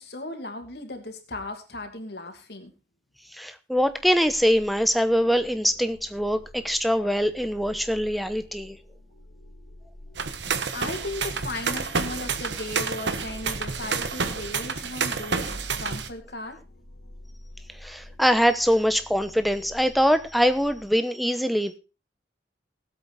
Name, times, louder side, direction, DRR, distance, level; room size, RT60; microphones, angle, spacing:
voice 1, 0.0-2.7 10.7-16.6, left 2 dB, 65° left, 5 dB, 2.6 m, -36 dB
voice 2, 3.3-8.8 17.7-21.8, equal, ahead, 10 dB, 1.0 m, -23 dB
sound 1, 3.8-20.9, left 1 dB, 85° left, 2.2 m, -49 dB
sound 2, 10.1-16.1, right 5 dB, 90° right, 1.3 m, -29 dB
18.5 x 8.2 x 4.2 m, 0.30 s
head